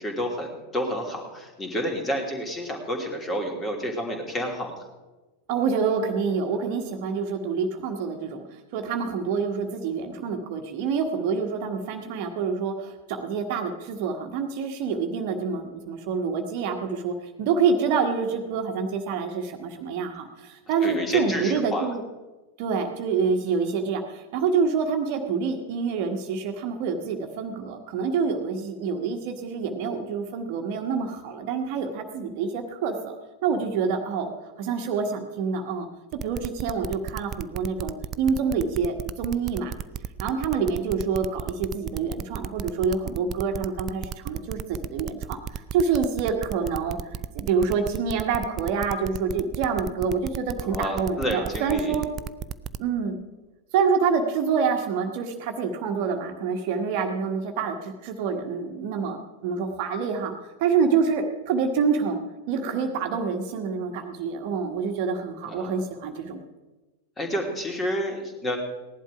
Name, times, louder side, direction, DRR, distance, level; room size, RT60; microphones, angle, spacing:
voice 1, 0.0-4.7 20.8-21.9 50.6-52.0 65.5-65.7 67.2-68.6, equal, 20° left, 3 dB, 2.8 m, -30 dB
voice 2, 5.5-22.0 22.6-33.1 33.4-34.3 34.6-35.9 36.2-39.7 40.2-52.1 52.8-53.2 53.7-60.3 60.6-62.2 62.5-66.4, right 5 dB, 45° right, 4 dB, 1.4 m, -27 dB
sound 1, 36.1-52.8, right 9 dB, 30° right, 0.5 m, -33 dB
17.5 x 11.0 x 4.9 m, 1.2 s
figure-of-eight pair, 90°, 0 cm